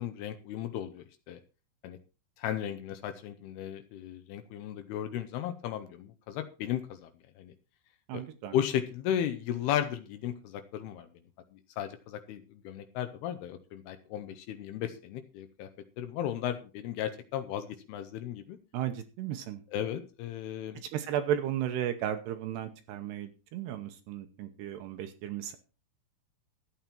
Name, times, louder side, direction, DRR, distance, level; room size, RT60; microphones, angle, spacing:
voice 1, 0.0-1.4 1.8-2.0 2.4-7.1 7.4-7.5 8.1-8.2 8.5-11.1 11.5-15.7 16.0-18.6 19.7-20.8, left 10 dB, 85° left, 9 dB, 2.3 m, -35 dB
voice 2, 8.1-8.6 18.7-19.6 20.8-25.6, right 10 dB, 75° right, 8 dB, 2.5 m, -34 dB
13.0 x 9.2 x 4.5 m, 0.34 s
omnidirectional pair, 5.7 m